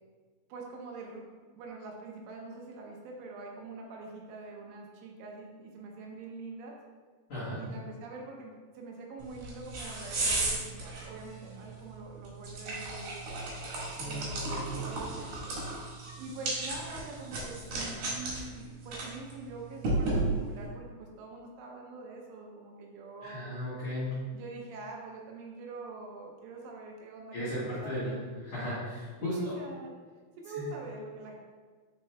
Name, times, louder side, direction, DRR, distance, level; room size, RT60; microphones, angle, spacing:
voice 1, 0.5-6.8 7.5-13.2 14.0-15.6 16.2-23.5 24.3-28.2 29.2-29.9 30.4-31.4, right 3 dB, 80° right, -1 dB, 3.0 m, -44 dB
voice 2, 7.3-7.6 14.0-14.7 23.2-24.1 27.3-29.5 30.5-30.7, left 1 dB, 85° left, -11 dB, 1.5 m, -36 dB
sound 1, 9.2-20.7, right 2 dB, 60° right, 2.5 m, -35 dB
9.7 x 4.3 x 2.2 m, 1.5 s
omnidirectional pair, 5.9 m